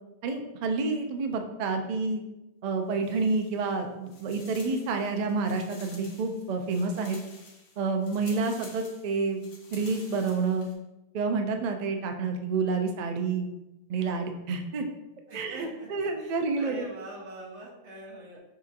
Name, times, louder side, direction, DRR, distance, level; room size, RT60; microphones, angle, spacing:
voice 1, 0.2-2.2 2.6-7.2 7.8-9.4 9.7-10.7 11.1-13.5 13.9-14.9 15.3-16.8, right 4 dB, 60° right, 5 dB, 0.4 m, -29 dB
sound 1, 2.9-3.8 4.1-10.7, left 3 dB, 70° left, 1.1 m, -51 dB
voice 2, 15.3-18.4, right 2 dB, 85° right, -3 dB, 1.3 m, -44 dB
6.5 x 2.7 x 2.5 m, 0.98 s
omnidirectional pair, 1.1 m